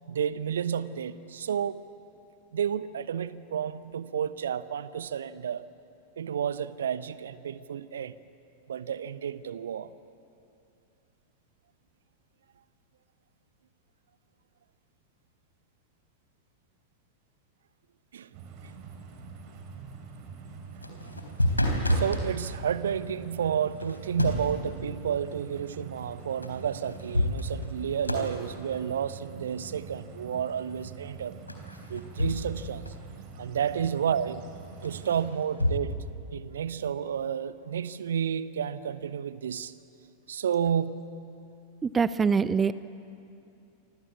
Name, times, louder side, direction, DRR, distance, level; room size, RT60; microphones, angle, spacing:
voice 1, 0.1-1.8 2.5-5.6 6.2-8.2 8.7-9.9 18.1-18.3 18.6-18.7 21.9-31.3 31.9-32.8 33.4-34.5 34.8-36.0 36.3-39.7 40.3-41.0, right 8 dB, 65° right, 15 dB, 1.0 m, -31 dB
sound 1, 18.3-35.3, right 5 dB, 45° right, 5.0 m, -45 dB
sound 2, 20.7-22.3 23.8-24.6 26.4-26.5 26.9-27.8 28.0-28.4 31.5-32.6 32.9-33.0 34.8-35.8, left 1 dB, 85° left, 3.7 m, -28 dB
voice 2, 41.8-42.7, right 5 dB, 15° right, 16 dB, 0.6 m, -24 dB
28.5 x 25.0 x 8.5 m, 2.6 s
figure-of-eight pair, 90°, 0 cm